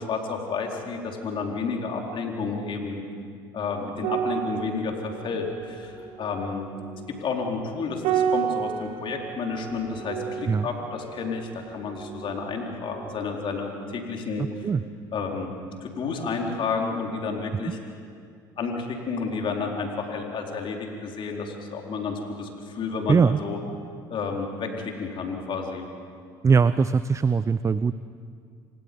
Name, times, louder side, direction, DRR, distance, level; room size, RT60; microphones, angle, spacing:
voice 1, 0.0-3.0 3.5-6.6 7.2-14.4 15.1-15.5 15.8-17.8 18.6-23.6 24.1-24.7 25.0-25.9, left 4 dB, 45° left, 1 dB, 4.3 m, -31 dB
sound 1, 4.0-12.7 13.0-13.2, right 9 dB, 65° right, 1.8 m, -32 dB
voice 2, 23.1-23.4 26.4-27.9, right 5 dB, 25° right, 15 dB, 0.6 m, -20 dB
29.0 x 26.5 x 5.4 m, 2.2 s
hypercardioid pair, 60°, 12 cm